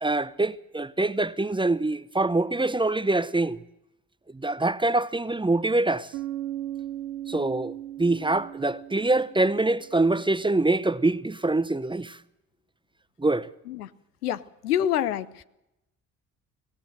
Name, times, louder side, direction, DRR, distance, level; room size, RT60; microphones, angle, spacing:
voice 1, 0.0-3.6 4.3-6.1 7.3-12.2 13.2-13.5, right 2 dB, 10° right, 0.9 m, -25 dB
Bass guitar, 6.1-10.0, right 12 dB, 85° right, 0.9 m, -37 dB
voice 2, 14.2-15.4, left 10 dB, 85° left, 0.8 m, -27 dB
25.0 x 17.5 x 6.6 m
hypercardioid pair, 50°, 45 cm